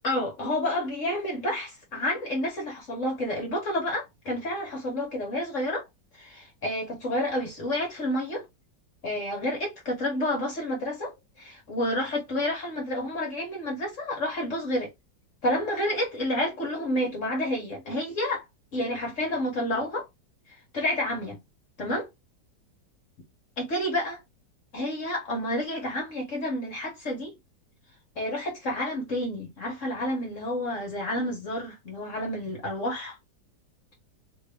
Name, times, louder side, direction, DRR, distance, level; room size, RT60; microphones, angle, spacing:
voice 1, 0.0-5.9 6.1-8.5 9.0-14.9 15.4-18.4 18.7-20.0 20.7-21.4 21.8-22.1 23.6-24.2 24.7-27.3 28.2-33.2, left 1 dB, 50° left, 1.3 m, -29 dB
3.0 x 2.6 x 3.3 m
omnidirectional pair, 1.9 m